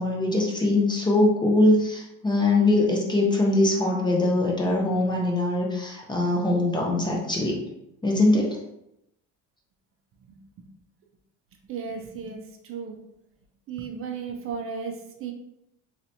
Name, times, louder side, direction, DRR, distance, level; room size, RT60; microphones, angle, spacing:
voice 1, 0.0-7.6 8.0-8.6, left 2 dB, 15° left, -2 dB, 0.5 m, -22 dB
voice 2, 10.3-10.6 11.7-13.0 13.7-15.3, right 6 dB, 45° right, 2 dB, 0.4 m, -35 dB
3.2 x 2.8 x 2.6 m, 0.82 s
cardioid pair, 145°, 32 cm